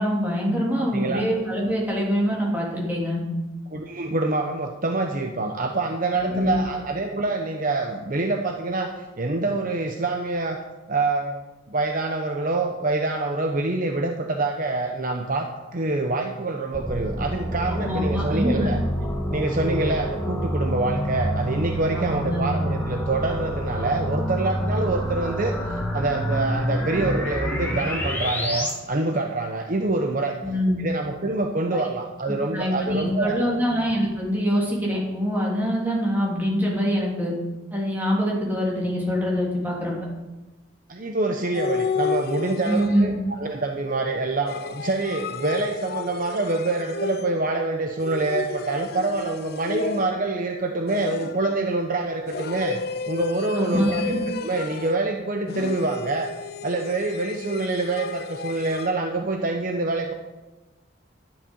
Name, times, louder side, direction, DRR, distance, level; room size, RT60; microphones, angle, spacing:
voice 1, 0.0-3.2 6.1-6.6 17.7-18.7 21.9-22.4 30.4-30.8 31.7-31.8 32.5-37.3 37.7-39.9 42.7-43.1 53.5-54.2, equal, 10° right, -4 dB, 3.1 m, -24 dB
voice 2, 0.8-1.3 3.7-10.6 10.9-11.4 11.7-18.8 19.3-30.4 30.8-33.5 40.9-43.1 43.4-56.3 56.6-60.1, right 2 dB, 40° right, 3 dB, 0.8 m, -26 dB
sound 1, 16.7-28.7, equal, 10° left, 1.8 m, -27 dB
sound 2, 41.5-43.3 44.5-47.5 48.0-50.4 50.9-51.6 52.3-55.1 55.5-59.0, left 4 dB, 50° left, 0.5 m, -32 dB
11.5 x 10.5 x 5.5 m, 1.1 s
head